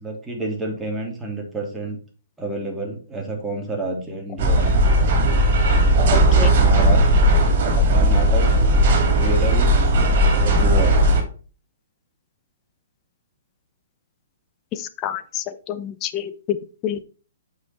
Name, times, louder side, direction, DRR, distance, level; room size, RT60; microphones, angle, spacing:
voice 1, 0.0-2.0 2.4-4.8 6.5-7.2 7.9-8.8 9.2-9.7 10.3-11.0, right 2 dB, 5° right, -1 dB, 2.9 m, -29 dB
sound 1, 4.4-11.2, right 1 dB, 50° right, 3.2 m, -16 dB
voice 2, 6.1-6.5 7.7-7.8 14.7-16.6 16.8-17.0, left 9 dB, 30° left, 11 dB, 0.8 m, -28 dB
8.1 x 5.7 x 4.5 m, 0.38 s
hypercardioid pair, 130°, 0 cm